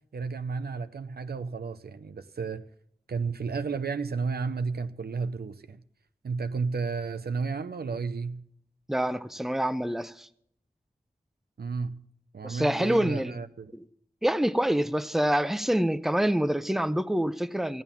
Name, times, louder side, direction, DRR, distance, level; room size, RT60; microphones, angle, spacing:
voice 1, 0.1-2.7 3.1-5.8 6.2-8.4 11.6-12.0 12.3-13.7, right 4 dB, 85° right, 0.6 m, -32 dB
voice 2, 8.9-10.3 12.4-13.3 13.7-13.8 14.2-17.8, right 1 dB, ahead, 0.6 m, -26 dB
15.0 x 9.0 x 7.0 m
cardioid pair, 40°, 16 cm